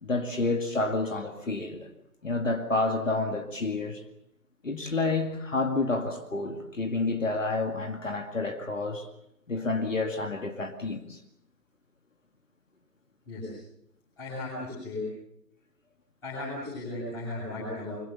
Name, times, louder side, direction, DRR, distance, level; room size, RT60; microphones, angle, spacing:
voice 1, 0.0-1.9 2.2-4.0 4.6-9.1 9.5-11.2, left 3 dB, 50° left, 5 dB, 2.3 m, -29 dB
voice 2, 13.3-13.6 14.2-15.1 16.2-18.0, left 2 dB, 5° left, -11 dB, 7.3 m, -36 dB
25.0 x 24.0 x 7.0 m, 0.79 s
figure-of-eight pair, 165°, 49 cm